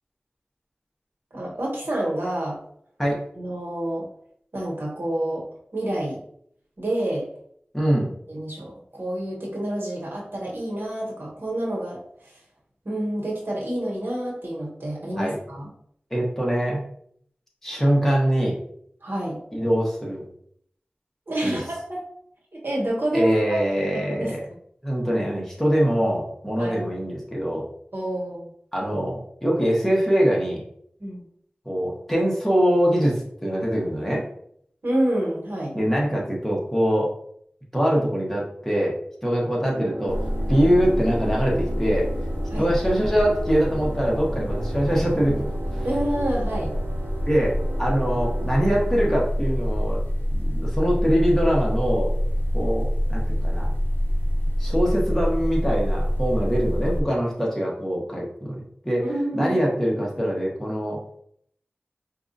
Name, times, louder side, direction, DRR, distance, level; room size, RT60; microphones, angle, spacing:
voice 1, 1.3-2.6 3.4-4.1 4.5-5.4 5.7-6.2 6.8-7.3 8.3-12.0 12.8-15.7 19.0-19.4 21.3-22.0 22.5-23.6 23.9-24.3 26.6-26.8 27.9-28.5 31.0-31.2 34.8-35.8 42.5-42.7 45.8-46.8 59.0-59.6, right 1 dB, 75° right, -3 dB, 1.2 m, -28 dB
voice 2, 7.7-8.1 15.2-15.4 16.1-16.8 17.6-18.6 19.5-20.2 21.4-21.6 23.1-24.2 24.8-27.7 28.7-30.6 31.6-34.2 35.7-37.1 37.7-38.9 39.2-40.2 40.5-42.1 42.6-45.9 47.2-50.0 50.3-52.1 52.5-53.7 54.6-61.0, equal, 10° left, -3 dB, 1.2 m, -23 dB
sound 1, 39.7-49.2, right 2 dB, 45° right, 0.4 m, -36 dB
sound 2, 40.1-57.0, equal, 60° left, 0.6 m, -26 dB
4.6 x 2.5 x 2.6 m, 0.67 s
wide cardioid pair, 45°, 4 cm